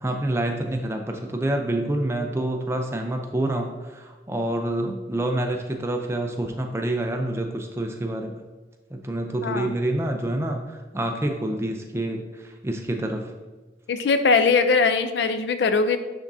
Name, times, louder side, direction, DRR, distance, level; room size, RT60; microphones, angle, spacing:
voice 1, 0.0-8.3 8.9-13.3, right 1 dB, 15° right, 3 dB, 0.4 m, -27 dB
voice 2, 9.4-9.7 13.9-16.0, left 4 dB, 75° left, 10 dB, 0.4 m, -21 dB
10.0 x 3.6 x 2.6 m, 1.3 s
head